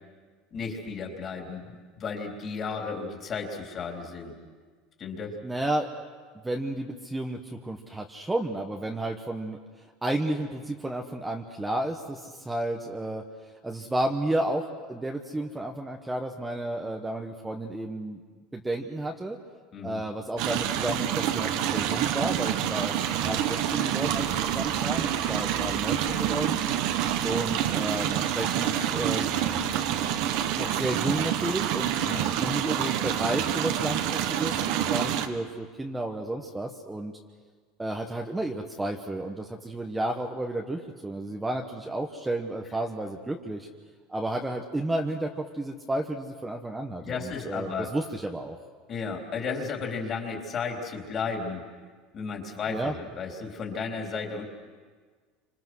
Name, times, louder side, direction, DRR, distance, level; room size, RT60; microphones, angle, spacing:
voice 1, 0.5-4.3 5.0-5.3 19.7-20.0 29.4-29.7 32.0-32.2 47.0-47.9 48.9-51.6 52.1-54.5, left 5 dB, 30° left, 1 dB, 3.8 m, -34 dB
voice 2, 5.4-5.9 6.4-9.6 10.0-13.2 13.6-18.2 18.5-19.4 19.8-22.9 23.2-26.6 27.2-29.3 30.5-31.9 32.4-37.1 37.8-43.7 44.1-48.6 52.7-52.9, right 1 dB, 5° right, 2 dB, 1.2 m, -32 dB
sound 1, 20.4-35.3, right 10 dB, 60° right, 1.6 m, -27 dB
28.0 x 26.0 x 6.3 m, 1.5 s
cardioid pair, 155°, 0 cm